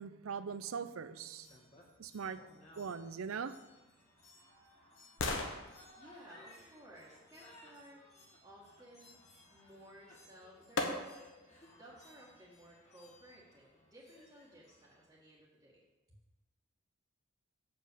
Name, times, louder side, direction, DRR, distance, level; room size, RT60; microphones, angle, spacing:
voice 1, 0.0-1.5 2.0-2.4 2.8-3.6, right 6 dB, 85° right, 13 dB, 0.5 m, -41 dB
sound 1, 1.4-15.1, left 2 dB, 30° left, 1.6 m, -61 dB
sound 2, 3.7-7.8 9.9-10.0 10.8-11.4 11.9-12.0, left 3 dB, 65° left, 1.1 m, -42 dB
voice 2, 6.0-8.1 8.4-9.1 9.5-11.3 11.7-15.8 16.1-16.2, right 1 dB, 20° right, -8 dB, 1.5 m, -57 dB
7.6 x 5.3 x 6.7 m, 1.1 s
head